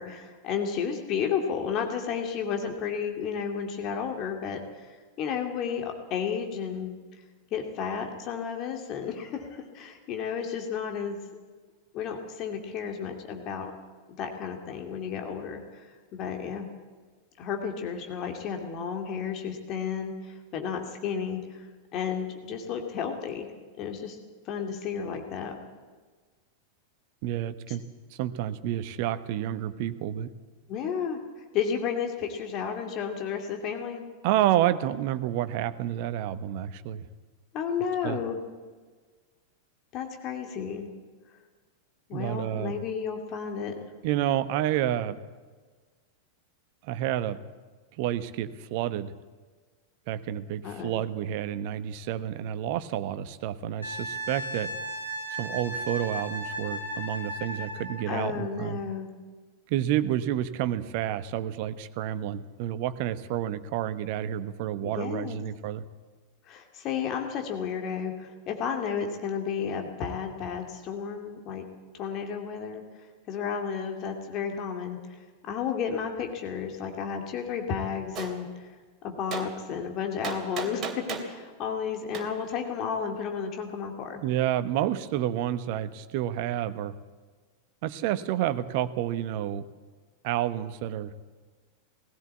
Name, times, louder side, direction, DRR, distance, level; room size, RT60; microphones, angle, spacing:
voice 1, 0.0-6.9 7.5-11.2 11.9-13.7 14.2-16.7 17.4-23.5 23.8-24.2 24.5-25.5 27.7-27.8 30.7-31.2 31.5-34.0 37.5-38.4 39.9-40.9 42.1-43.7 50.6-51.0 58.1-59.1 64.8-65.4 66.5-71.7 71.9-72.8 73.3-78.7 79.0-84.2, left 7 dB, 35° left, 4 dB, 2.6 m, -32 dB
voice 2, 27.2-27.8 28.1-30.3 34.2-37.0 38.0-38.2 42.1-42.8 44.0-45.2 46.8-47.4 48.0-49.1 50.1-54.7 55.4-58.8 59.7-65.8 84.2-86.9 87.8-89.6 90.2-91.1, right 12 dB, 45° right, 13 dB, 1.1 m, -29 dB
Wind instrument woodwind instrument, 53.8-58.1 60.7-60.9, right 1 dB, 80° left, 2.8 m, -35 dB
Gunshot gunfire, 78.1-78.3 79.3-79.5 80.2-81.3 82.1-82.3, right 6 dB, 30° right, 3.0 m, -34 dB
19.0 x 16.5 x 8.3 m, 1.4 s
figure-of-eight pair, 90°, 0 cm